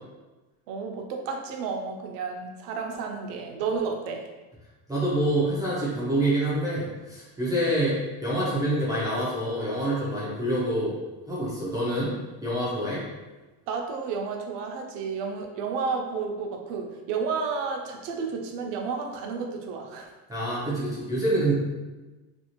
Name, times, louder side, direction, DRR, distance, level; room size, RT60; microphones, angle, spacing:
voice 1, 0.7-4.2 13.7-20.1, right 5 dB, 75° right, 2 dB, 0.6 m, -31 dB
voice 2, 4.9-11.0 11.3-12.1 12.4-13.0 20.3-21.5, right 1 dB, 10° right, -9 dB, 0.3 m, -26 dB
2.6 x 2.4 x 2.8 m, 1.2 s
cardioid pair, 155°, 44 cm